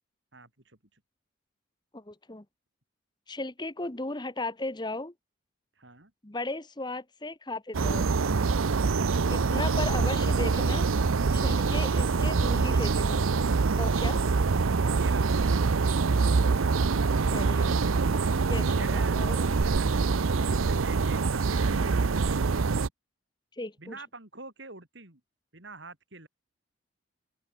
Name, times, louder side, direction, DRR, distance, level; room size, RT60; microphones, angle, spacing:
voice 1, 0.3-1.0 5.8-6.1 13.9-14.0 15.0-15.3 18.7-19.2 19.6-19.9 20.5-21.9 22.2-22.7 23.8-25.2 25.5-26.3, right 3 dB, 60° right, 4.0 m, -47 dB
voice 2, 1.9-2.4 3.3-5.1 6.2-8.1 9.3-10.9 11.3-13.3 13.8-14.2 17.3-17.8 18.5-19.5 21.7-22.1 23.6-23.9, left 2 dB, 20° left, 1.1 m, -36 dB
sound 1, 7.7-22.9, right 4 dB, 85° right, 0.7 m, -25 dB
open air
head